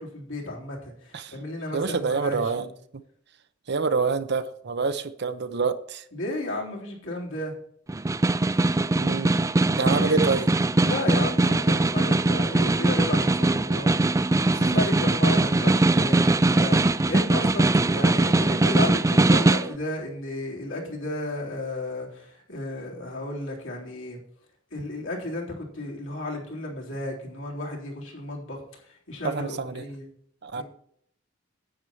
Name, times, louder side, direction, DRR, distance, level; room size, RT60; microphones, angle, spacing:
voice 1, 0.0-2.7 6.1-7.5 9.9-10.2 10.8-24.2 24.7-30.1 30.5-30.6, left 1 dB, 70° left, 3.7 m, -33 dB
voice 2, 1.7-2.6 2.9-3.0 3.7-6.0 9.0-9.4 9.8-10.5 29.2-29.8 30.4-30.6, right 4 dB, 55° right, 0.8 m, -27 dB
Snare drum, 7.9-19.7, right 2 dB, 15° right, 0.3 m, -21 dB
10.5 x 8.7 x 4.5 m
head